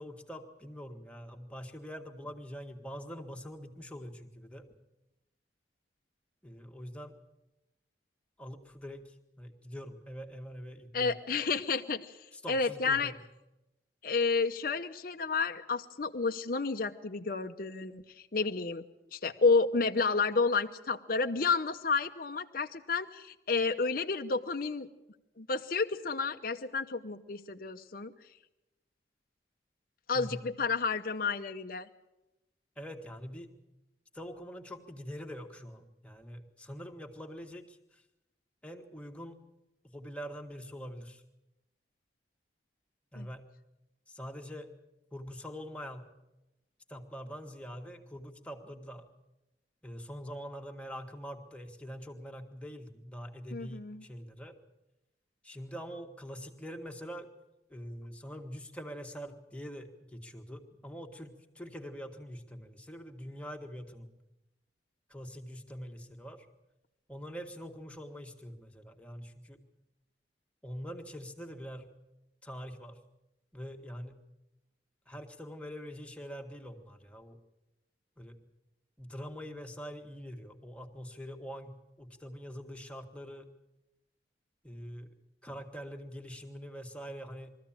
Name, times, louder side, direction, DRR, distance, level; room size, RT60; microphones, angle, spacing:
voice 1, 0.0-4.7 6.4-7.1 8.4-11.1 12.3-13.2 30.1-30.5 32.8-33.5 34.1-38.0 38.6-39.4 39.9-41.2 43.1-43.5 44.1-44.7 45.1-46.1 46.9-49.1 49.8-54.6 55.4-57.3 57.7-64.1 65.1-66.5 67.1-69.6 70.6-71.9 72.4-73.0 73.5-74.2 75.1-77.4 78.2-78.4 79.0-83.5 84.6-85.1 85.4-87.6, equal, 5° left, 3 dB, 1.7 m, -44 dB
voice 2, 10.9-12.2 12.5-13.1 14.0-18.0 18.3-18.9 19.1-24.9 25.4-28.1 30.1-31.9 43.2-43.3 53.5-54.0, left 4 dB, 55° left, 6 dB, 0.8 m, -30 dB
22.0 x 14.5 x 8.8 m, 0.95 s
head